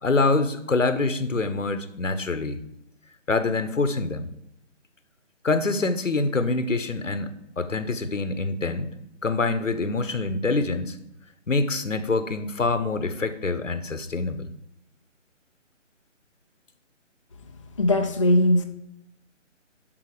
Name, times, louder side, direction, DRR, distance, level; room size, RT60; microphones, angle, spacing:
voice 1, 0.0-2.6 3.3-4.3 5.4-8.9 9.2-11.0 11.5-14.4, left 3 dB, 90° left, 11 dB, 1.2 m, -25 dB
voice 2, 17.8-18.6, left 1 dB, 25° left, 3 dB, 0.6 m, -19 dB
11.5 x 5.7 x 4.9 m, 0.78 s
figure-of-eight pair, 155°, 37 cm